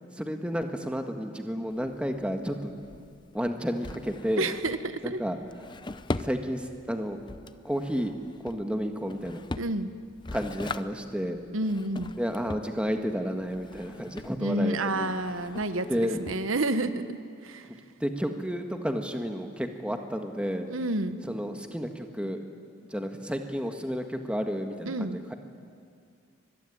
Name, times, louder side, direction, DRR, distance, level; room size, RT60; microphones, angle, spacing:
voice 1, 0.1-2.7 3.3-4.5 5.0-5.4 6.2-7.2 7.6-8.1 8.4-9.4 10.3-11.4 12.2-15.1 15.9-16.2 18.0-20.7 21.2-22.4 22.9-25.3, equal, 5° right, 5 dB, 1.5 m, -31 dB
Drawer open or close, 1.7-16.9, left 2 dB, 20° left, 0.6 m, -41 dB
voice 2, 4.4-5.2 9.6-9.9 11.5-12.1 14.4-17.2 17.4-17.7 20.7-21.2 24.8-25.2, right 2 dB, 80° right, 10 dB, 1.2 m, -29 dB
25.0 x 21.5 x 9.9 m, 2.3 s
head